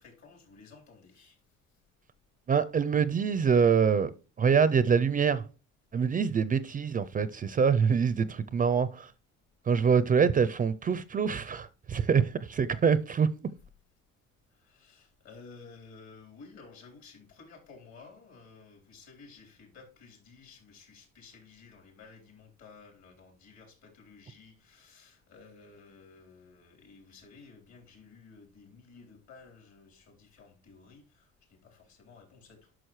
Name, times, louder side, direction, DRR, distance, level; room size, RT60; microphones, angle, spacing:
voice 1, 0.0-1.4 14.5-32.7, left 4 dB, 60° left, 3.9 m, -54 dB
voice 2, 2.5-4.1 4.4-5.4 5.9-9.1 9.7-13.3, right 6 dB, 30° right, 0.4 m, -25 dB
11.0 x 6.1 x 3.1 m
cardioid pair, 105°, 30 cm